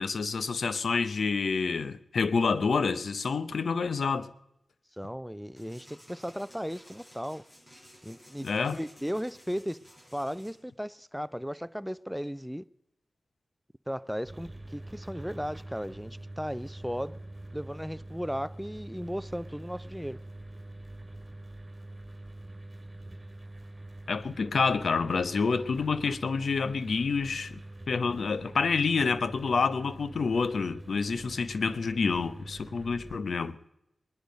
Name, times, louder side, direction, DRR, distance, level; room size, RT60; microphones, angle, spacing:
voice 1, 0.0-4.3 8.4-8.8 24.1-27.6 27.9-33.6, left 5 dB, 80° left, 0.7 m, -28 dB
voice 2, 5.0-7.4 8.0-8.5 8.7-9.8 10.1-12.6 13.9-17.2 17.5-20.2 28.0-28.3, equal, ahead, 0.4 m, -36 dB
sound 1, 5.6-10.5, equal, 30° left, 6.1 m, -55 dB
sound 2, 14.2-33.2, right 1 dB, 25° right, 2.6 m, -45 dB
20.5 x 10.5 x 5.2 m
wide cardioid pair, 105°, 0 cm